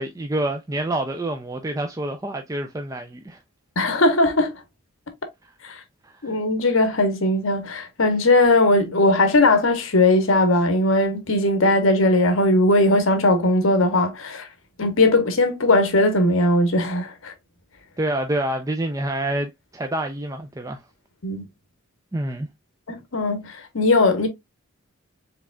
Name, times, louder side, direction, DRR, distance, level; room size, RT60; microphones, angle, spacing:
voice 1, 0.0-3.4 5.4-5.5 6.0-6.3 18.0-20.8 22.1-22.5, right 1 dB, 15° right, 0.3 m, -27 dB
voice 2, 3.8-4.6 5.6-5.7 6.2-14.5 14.8-17.3 21.2-21.4 22.9-24.3, left 2 dB, 65° left, 1.0 m, -19 dB
4.8 x 3.4 x 2.2 m
head